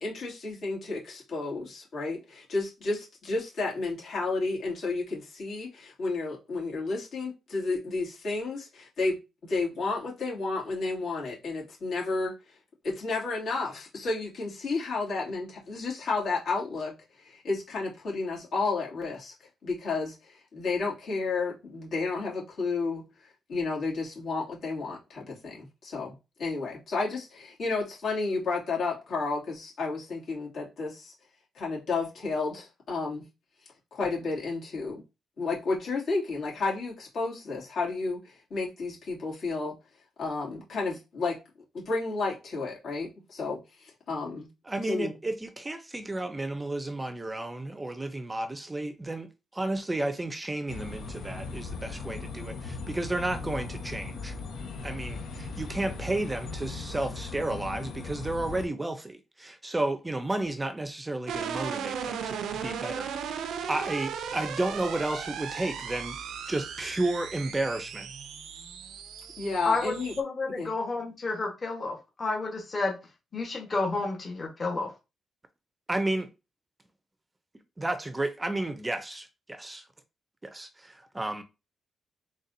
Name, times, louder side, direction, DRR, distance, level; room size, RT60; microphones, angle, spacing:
voice 1, 0.0-9.2 9.4-12.3 12.8-16.9 17.2-19.3 19.6-26.1 26.4-31.1 31.5-33.2 33.9-35.0 35.4-39.7 40.2-41.4 41.7-44.5 44.8-45.1 69.4-70.1 70.6-70.7, left 3 dB, 65° left, 2.4 m, -32 dB
voice 2, 44.7-54.3 54.8-66.2 66.5-68.1 75.9-76.3 77.8-79.9 80.4-81.4, right 2 dB, 15° right, 0.5 m, -32 dB
sound 1, 50.7-58.7, left 4 dB, 90° left, 1.1 m, -38 dB
sound 2, 61.3-70.2, right 7 dB, 85° right, 0.4 m, -36 dB
voice 3, 69.6-73.0 73.3-74.9, left 3 dB, 35° left, 1.2 m, -30 dB
4.0 x 3.6 x 2.6 m
cardioid pair, 110°, 0 cm